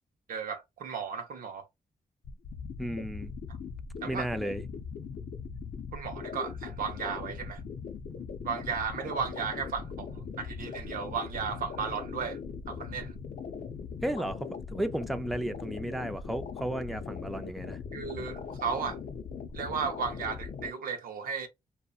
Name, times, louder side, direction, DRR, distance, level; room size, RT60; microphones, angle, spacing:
voice 1, 0.3-1.7 4.0-4.3 5.9-7.6 8.4-12.4 12.7-13.1 17.9-19.0 19.5-21.5, right 6 dB, 80° right, 0.6 m, -35 dB
sound 1, 2.2-20.7, left 6 dB, 70° left, 0.5 m, -40 dB
voice 2, 2.8-3.3 4.1-4.6 14.0-17.8, right 1 dB, ahead, 0.4 m, -34 dB
2.8 x 2.1 x 2.3 m
cardioid pair, 60°, 14 cm